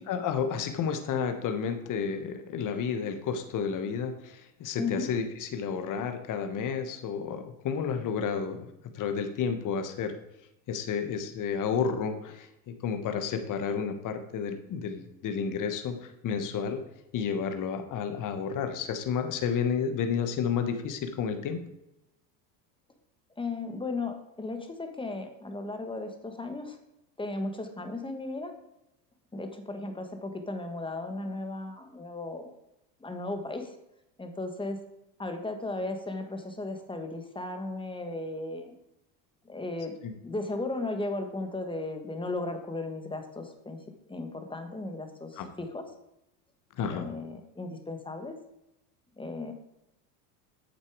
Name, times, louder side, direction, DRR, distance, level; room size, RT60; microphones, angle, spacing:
voice 1, 0.0-8.7 8.9-10.2 10.7-16.8 17.1-21.6 40.0-40.1 45.4-45.5 46.8-47.1, left 6 dB, 40° left, 7 dB, 1.3 m, -31 dB
voice 2, 4.7-5.1 23.4-26.8 27.2-28.5 29.3-32.5 33.0-33.8 34.2-34.8 35.2-38.7 39.4-40.0 40.2-43.8 44.1-45.8 46.9-48.4 49.2-49.5, left 2 dB, 10° left, 6 dB, 1.4 m, -35 dB
8.6 x 6.7 x 4.8 m, 0.85 s
supercardioid pair, 110°, 48 cm